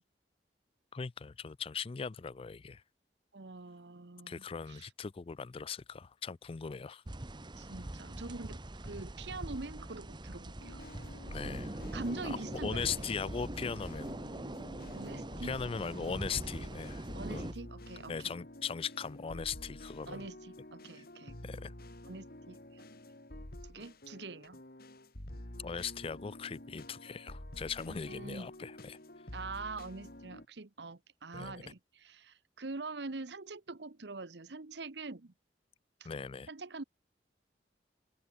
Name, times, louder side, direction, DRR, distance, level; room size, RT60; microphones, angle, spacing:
voice 1, 0.9-2.8 4.3-7.0 11.3-11.8 12.2-14.2 15.4-17.5 18.1-20.3 21.0-21.1 21.4-21.7 25.6-29.0 31.3-31.6 36.0-36.5, left 6 dB, 30° left, 0.4 m, -39 dB
voice 2, 3.3-4.9 7.5-10.8 11.9-13.1 14.9-15.5 17.1-18.3 20.1-21.4 22.0-22.8 23.6-24.6 27.9-28.5 29.3-35.3 36.0-36.1 36.5-36.8, right 3 dB, 70° right, 1.1 m, -44 dB
sound 1, 7.1-17.5, right 1 dB, 25° right, 1.1 m, -43 dB
sound 2, 10.6-30.5, left 1 dB, 55° left, 3.0 m, -49 dB
open air
head